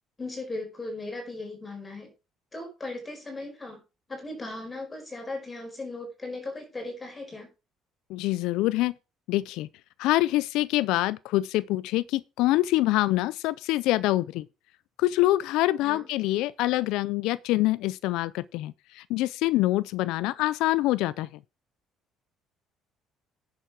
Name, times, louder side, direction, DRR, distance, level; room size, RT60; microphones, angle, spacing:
voice 1, 0.2-2.1 2.5-3.8 4.1-7.5 15.8-16.1, left 2 dB, 15° left, 4.7 m, -37 dB
voice 2, 8.1-8.9 9.3-9.7 10.0-14.4 15.0-21.3, left 17 dB, 85° left, 0.4 m, -25 dB
10.0 x 6.7 x 4.8 m
cardioid pair, 145°, 0 cm